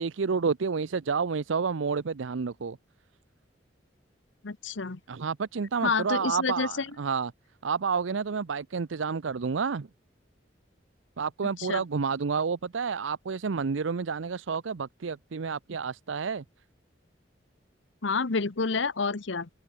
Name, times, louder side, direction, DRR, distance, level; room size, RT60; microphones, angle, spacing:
voice 1, 0.0-2.8 5.1-7.3 7.6-9.9 11.2-16.4, right 5 dB, 80° right, 0.6 m, -30 dB
voice 2, 4.4-5.0 5.8-6.9 11.6-11.8 18.0-19.5, left 4 dB, 70° left, 1.0 m, -29 dB
head